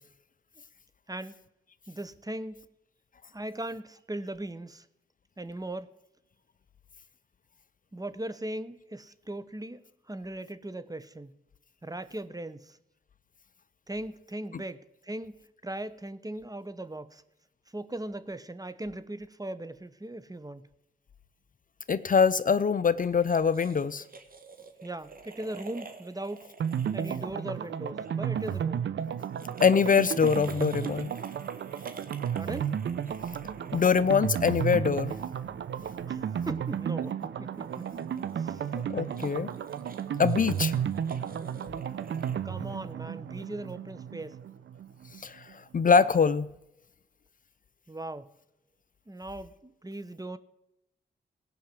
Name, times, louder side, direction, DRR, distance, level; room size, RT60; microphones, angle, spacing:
voice 1, 1.9-2.6 3.3-4.9 5.4-5.9 7.9-11.4 11.8-12.8 13.9-17.2 17.7-20.7 24.8-26.5 26.9-28.8 32.3-32.8 36.1-38.0 38.4-38.6 42.4-44.4 47.9-48.3 49.1-50.4, right 1 dB, 20° right, 13 dB, 1.0 m, -39 dB
voice 2, 21.9-24.0 29.6-31.1 33.7-35.1 38.9-39.5 40.2-40.7 45.2-45.4 45.7-46.5, left 6 dB, 45° left, 15 dB, 0.6 m, -23 dB
sound 1, 23.0-28.1 29.2-34.4 37.6-42.4, right 4 dB, 50° right, 1.8 m, -50 dB
sound 2, 26.6-45.2 45.5-45.6 45.8-45.9, right 8 dB, 70° right, 0.7 m, -33 dB
17.5 x 5.8 x 7.6 m, 0.88 s
supercardioid pair, 50°, 19 cm